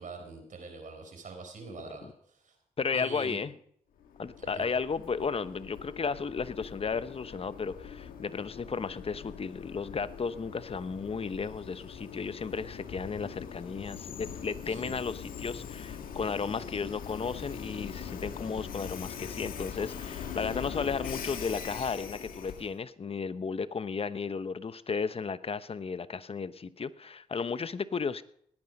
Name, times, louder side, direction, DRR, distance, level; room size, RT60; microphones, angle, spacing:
voice 1, 0.0-2.1 2.4-2.5 2.9-3.4 4.4-4.6 14.7-14.9, right 4 dB, 65° right, 4 dB, 4.4 m, -44 dB
voice 2, 2.8-3.5 4.2-28.2, left 5 dB, 40° left, 15 dB, 0.9 m, -34 dB
Train, 4.0-22.8, left 7 dB, 80° left, 1.6 m, -42 dB
19.5 x 9.6 x 5.3 m, 0.67 s
supercardioid pair, 50°, 15 cm